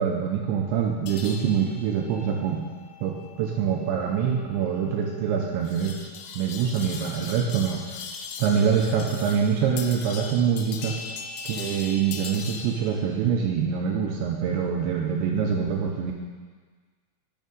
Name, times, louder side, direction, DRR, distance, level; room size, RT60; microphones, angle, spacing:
voice 1, 0.0-2.7 3.0-6.0 6.4-8.0 8.4-11.0 11.4-16.1, right 7 dB, 85° right, 0 dB, 2.6 m, -25 dB
sound 1, 1.1-12.9, left 5 dB, 85° left, 3.3 m, -40 dB
9.0 x 7.2 x 5.3 m, 1.5 s
omnidirectional pair, 6.0 m